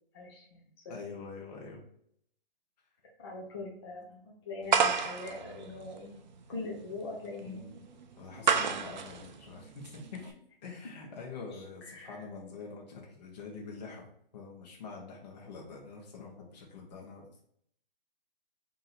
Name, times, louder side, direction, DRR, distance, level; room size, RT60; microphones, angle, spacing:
voice 1, 0.1-1.0 3.2-6.2 6.5-7.6 11.5-12.2, left 3 dB, 25° left, -3 dB, 0.5 m, -42 dB
voice 2, 0.9-1.8 7.4-7.9 8.2-14.1 14.3-17.4, left 4 dB, 45° left, -2 dB, 1.1 m, -45 dB
sound 1, 4.7-10.3, right 6 dB, 50° right, 0.5 m, -31 dB
3.5 x 2.8 x 4.2 m, 0.66 s
hypercardioid pair, 160°, 29 cm